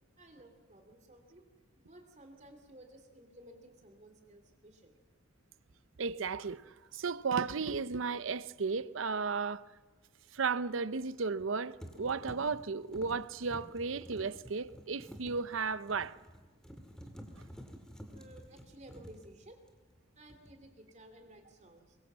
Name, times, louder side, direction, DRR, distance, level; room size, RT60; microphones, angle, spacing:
voice 1, 0.2-1.4 1.8-4.9 18.1-19.6 20.2-22.0, right 1 dB, 35° right, 2.8 m, -56 dB
voice 2, 6.0-6.6 6.9-9.6 10.3-16.1, right 5 dB, 65° right, 0.6 m, -34 dB
sound 1, 7.8-8.0 11.1-11.5 11.8-20.0 20.3-20.7, equal, 5° left, 2.2 m, -51 dB
23.0 x 23.0 x 7.5 m
head